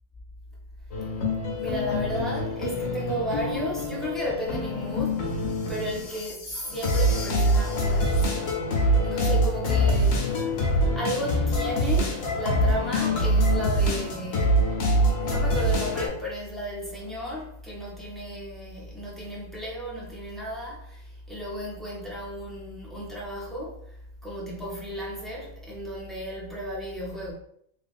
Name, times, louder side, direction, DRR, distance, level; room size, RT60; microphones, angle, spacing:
sound 1, 0.9-16.1, equal, 90° left, 1.1 m, -25 dB
voice 1, 1.6-5.2 5.7-8.2 9.0-14.5 15.2-23.8 24.2-27.3, equal, ahead, 0.4 m, -34 dB
3.0 x 2.4 x 2.5 m
omnidirectional pair, 1.3 m